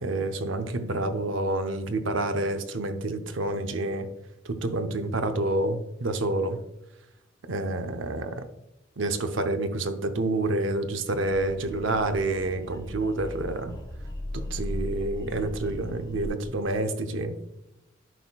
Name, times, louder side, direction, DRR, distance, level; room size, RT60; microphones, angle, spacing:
voice 1, 0.0-4.1 4.4-6.6 7.5-8.4 9.0-13.7 14.3-17.3, right 2 dB, 70° right, 7 dB, 0.7 m, -28 dB
sound 1, 11.3-16.3, equal, 20° left, 0.9 m, -37 dB
11.0 x 4.3 x 2.3 m, 0.90 s
head